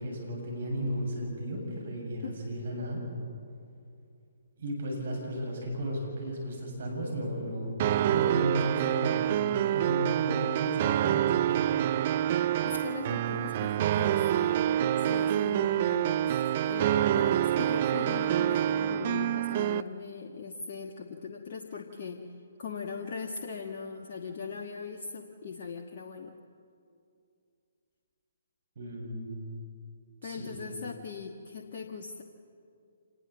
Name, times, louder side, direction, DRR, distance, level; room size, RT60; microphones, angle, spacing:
voice 1, 0.0-3.0 4.6-7.7 8.0-9.4 9.7-11.8 28.8-29.4 30.2-30.6, right 1 dB, 60° right, 1 dB, 7.6 m, -34 dB
sound 1, 7.8-19.8, right 11 dB, 40° right, 0.5 m, -27 dB
voice 2, 12.6-22.3 22.6-26.3 30.2-32.2, left 5 dB, 50° left, 2 dB, 1.4 m, -40 dB
26.0 x 20.0 x 7.2 m, 2.4 s
figure-of-eight pair, 135°, 0 cm